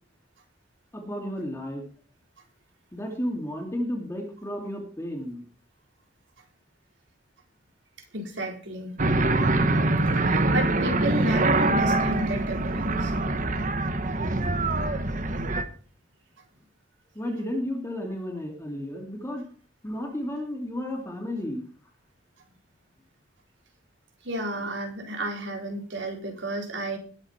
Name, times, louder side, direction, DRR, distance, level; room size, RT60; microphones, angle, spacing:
voice 1, 0.9-1.9 2.9-5.4 17.1-19.5 19.8-21.7, left 1 dB, 15° left, 1 dB, 2.5 m, -32 dB
voice 2, 8.1-9.0 10.1-13.2 24.2-27.0, right 1 dB, 85° right, 2 dB, 4.5 m, -32 dB
sound 1, 9.0-15.6, right 2 dB, 45° right, 1.3 m, -24 dB
20.5 x 7.9 x 4.4 m, 0.41 s
head